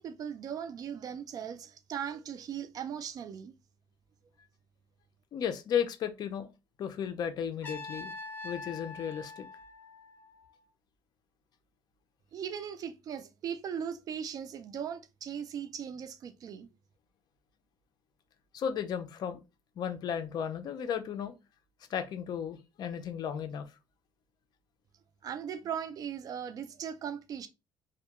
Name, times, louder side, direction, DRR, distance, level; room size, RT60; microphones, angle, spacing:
voice 1, 0.0-3.5 12.3-16.7 25.2-27.5, right 8 dB, 45° right, 0.4 m, -38 dB
voice 2, 5.3-6.5 6.8-8.1 8.4-9.5 18.5-19.4 19.8-21.3 21.9-23.7, left 8 dB, 50° left, 0.4 m, -34 dB
Trumpet, 7.6-10.6, left 3 dB, 20° left, 0.7 m, -44 dB
2.2 x 2.2 x 2.8 m
cardioid pair, 125°, 9 cm